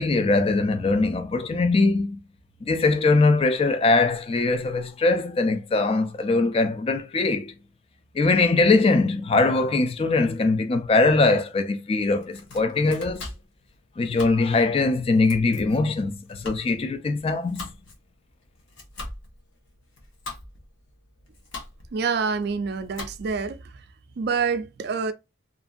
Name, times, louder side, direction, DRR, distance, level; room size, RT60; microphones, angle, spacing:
voice 1, 0.0-2.2 2.6-7.5 8.1-13.3 14.0-17.7, left 3 dB, 30° left, 0.3 m, -21 dB
Domestic sounds home sounds, 12.1-23.5, left 2 dB, 70° left, 1.0 m, -42 dB
voice 2, 21.9-23.7 24.2-25.1, right 5 dB, 50° right, 0.4 m, -27 dB
2.8 x 2.6 x 2.3 m
head